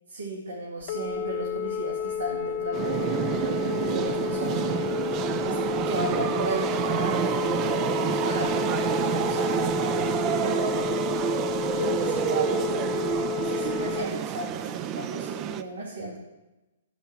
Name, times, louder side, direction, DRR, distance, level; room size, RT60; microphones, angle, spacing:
voice 1, 0.1-5.6 5.8-11.0 11.8-13.0 13.4-16.2, right 1 dB, 80° right, -3 dB, 2.2 m, -35 dB
Telephone, 0.8-14.0, left 8 dB, 45° left, 0.8 m, -31 dB
sound 1, 2.7-15.6, right 9 dB, 30° right, 0.5 m, -28 dB
10.5 x 5.6 x 7.3 m, 1.0 s
figure-of-eight pair, 120°, 0 cm